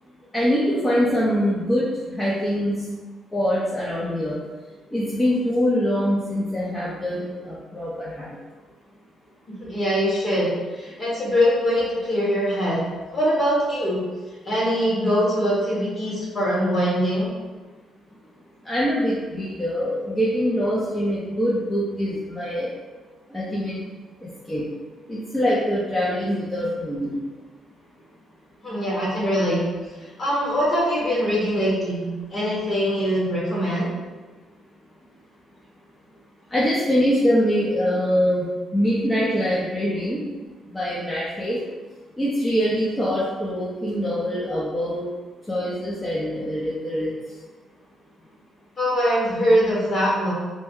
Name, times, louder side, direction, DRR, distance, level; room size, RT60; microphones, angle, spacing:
voice 1, 0.3-2.8 3.3-4.4 4.9-8.4 18.6-22.7 23.3-23.8 24.2-24.6 25.1-27.1 36.5-38.5 38.7-40.2 40.7-41.6 42.2-45.1 45.5-47.1, equal, 15° left, -8 dB, 0.7 m, -24 dB
voice 2, 9.6-10.5 10.8-12.8 13.1-14.0 14.4-17.3 28.6-29.6 30.2-33.9 48.8-50.3, equal, 40° left, -6 dB, 1.4 m, -22 dB
2.7 x 2.1 x 3.6 m, 1.3 s
cardioid pair, 90°, 0 cm